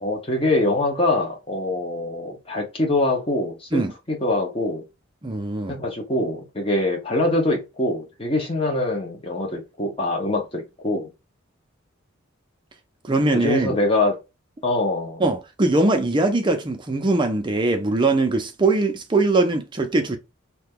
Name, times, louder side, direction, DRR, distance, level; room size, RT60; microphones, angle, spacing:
voice 1, 0.0-3.8 4.1-4.8 5.7-11.1 13.3-14.2 14.6-15.2, left 2 dB, 25° left, 0.9 m, -24 dB
voice 2, 5.2-5.8 13.1-13.7 15.2-20.2, right 2 dB, 20° right, 0.5 m, -21 dB
2.8 x 2.2 x 3.6 m
head